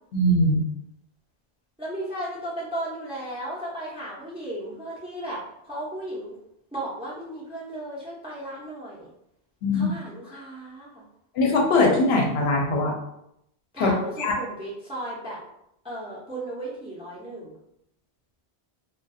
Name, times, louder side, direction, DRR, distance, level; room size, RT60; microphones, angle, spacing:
voice 1, 0.1-0.6 9.6-9.9 11.4-13.0 13.8-13.9 14.2-14.3, left 2 dB, 75° left, 0 dB, 0.8 m, -21 dB
voice 2, 1.8-6.4 6.7-9.1 9.7-11.0 13.7-15.4 15.8-17.6, right 1 dB, 10° right, -6 dB, 0.4 m, -35 dB
2.3 x 2.2 x 2.6 m, 0.78 s
omnidirectional pair, 1.1 m